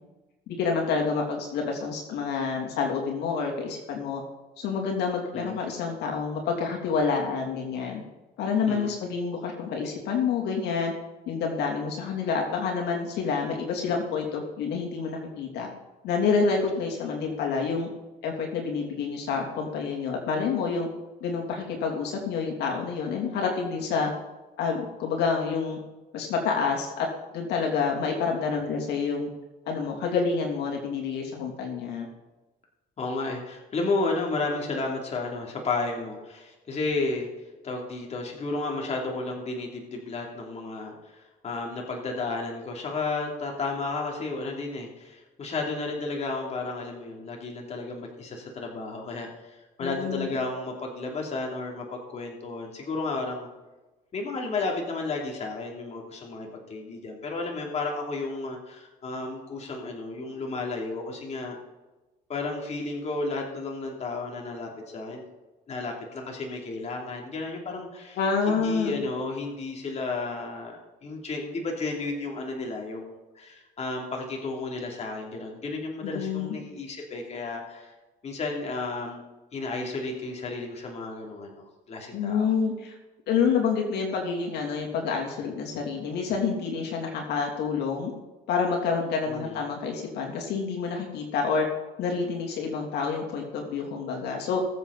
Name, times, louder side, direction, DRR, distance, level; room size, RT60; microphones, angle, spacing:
voice 1, 0.5-4.2 4.6-8.0 8.4-10.9 11.3-15.7 16.0-17.9 18.2-20.9 21.2-24.1 24.6-25.8 26.1-27.1 27.3-29.3 29.7-32.1 49.8-50.4 68.2-69.0 76.0-76.6 82.1-83.0 83.3-88.1 88.5-91.7 92.0-94.6, left 5 dB, 80° left, 0 dB, 3.0 m, -28 dB
voice 2, 33.0-37.3 37.6-53.5 54.1-61.6 62.3-65.3 65.7-68.2 68.5-77.9 78.2-79.2 79.5-82.5 89.3-89.7, left 3 dB, 40° left, 0 dB, 3.1 m, -33 dB
20.5 x 7.8 x 4.2 m, 1.1 s
cardioid pair, 110°, 17 cm